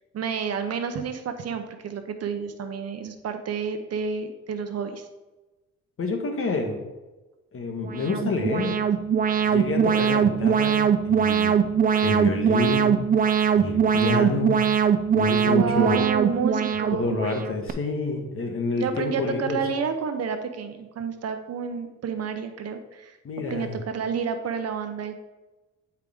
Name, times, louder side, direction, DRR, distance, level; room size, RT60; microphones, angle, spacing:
voice 1, 0.1-5.1 15.5-17.2 18.8-23.2 23.5-25.2, right 6 dB, 55° right, 8 dB, 0.8 m, -30 dB
voice 2, 6.0-6.8 7.5-8.9 9.4-11.6 12.0-13.0 13.6-14.6 15.1-16.1 17.0-19.6 23.2-23.8, left 3 dB, 45° left, 3 dB, 1.4 m, -28 dB
Alarm, 7.8-17.7, right 7 dB, 30° right, 0.4 m, -22 dB
9.0 x 4.8 x 3.6 m, 1.1 s
cardioid pair, 90°, 30 cm